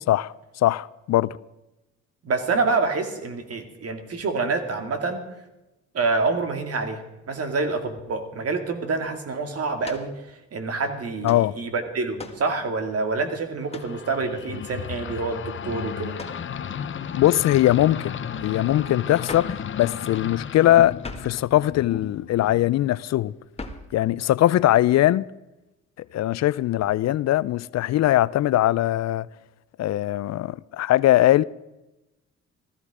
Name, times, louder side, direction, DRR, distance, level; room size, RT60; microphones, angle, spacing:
voice 1, 0.1-1.4 11.2-11.5 17.1-18.1 18.4-23.3 23.9-25.2 26.1-29.3 29.8-31.4, left 14 dB, 60° left, 0.4 m, -21 dB
voice 2, 2.2-5.3 5.9-16.2, right 3 dB, 50° right, 2.3 m, -27 dB
sound 1, 9.8-10.1 11.2-11.5 12.2-12.5 13.7-14.0 16.2-16.5 19.2-19.6 21.0-21.4 23.6-23.9, left 3 dB, 20° left, 1.6 m, -38 dB
sound 2, 13.7-23.0, left 8 dB, 40° left, 0.9 m, -34 dB
15.0 x 14.0 x 4.9 m
cardioid pair, 90°, 30 cm